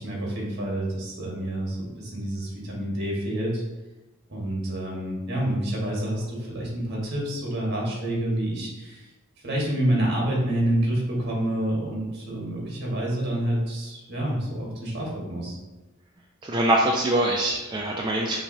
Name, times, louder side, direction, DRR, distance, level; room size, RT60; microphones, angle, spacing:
voice 1, 0.0-3.6 4.3-9.1 9.4-15.6, right 1 dB, 55° right, -3 dB, 1.5 m, -28 dB
voice 2, 16.4-18.4, right 1 dB, 20° right, -2 dB, 0.4 m, -23 dB
6.2 x 3.0 x 2.7 m, 1.1 s
head